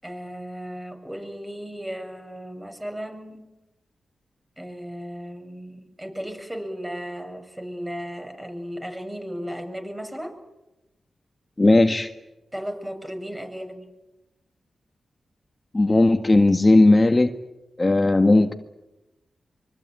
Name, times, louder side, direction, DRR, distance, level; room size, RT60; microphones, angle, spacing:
voice 1, 0.0-3.4 4.6-10.4 12.5-13.9, equal, 15° right, 5 dB, 7.1 m, -35 dB
voice 2, 11.6-12.1 15.7-17.3 17.8-18.5, left 2 dB, 30° left, 6 dB, 1.6 m, -17 dB
24.5 x 24.0 x 9.3 m, 0.98 s
cardioid pair, 50°, 0 cm